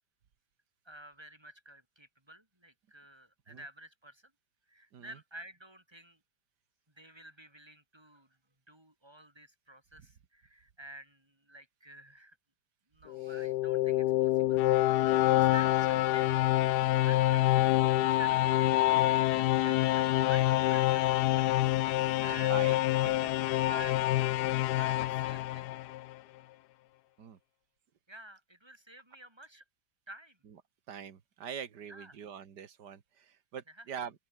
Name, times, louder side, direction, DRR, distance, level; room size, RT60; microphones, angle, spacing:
voice 1, 0.8-4.3 4.7-6.2 6.9-8.4 8.7-12.4 12.9-16.5 17.0-17.5 18.0-22.5 23.5-24.0 24.7-25.7 28.1-29.6 30.1-30.4 31.9-32.1 33.7-33.9, right 1 dB, 15° right, 6.6 m, -50 dB
sound 1, 13.1-26.1, left 15 dB, 85° left, 1.2 m, -27 dB
voice 2, 13.2-13.5 15.6-15.7 22.3-23.3 27.2-27.4 30.9-34.1, right 8 dB, 85° right, 2.2 m, -44 dB
open air
omnidirectional pair, 1.8 m